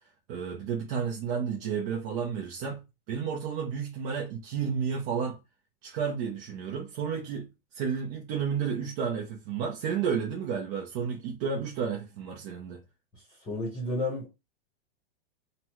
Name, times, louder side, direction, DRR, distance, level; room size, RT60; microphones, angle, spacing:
voice 1, 0.3-5.4 5.8-7.5 7.7-12.8, right 6 dB, 30° right, 0.6 m, -32 dB
voice 2, 13.1-14.3, left 2 dB, 15° left, 1.0 m, -32 dB
4.0 x 2.2 x 3.0 m
supercardioid pair, 160°, 30 cm